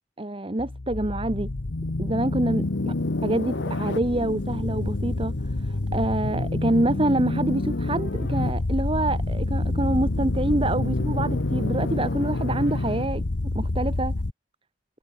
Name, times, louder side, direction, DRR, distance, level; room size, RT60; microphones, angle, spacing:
voice 1, 0.2-1.5 2.0-2.9 3.2-13.2 13.5-14.1, right 1 dB, 30° right, 1.3 m, -26 dB
sound 1, 0.6-14.3, left 2 dB, 75° left, 1.1 m, -27 dB
head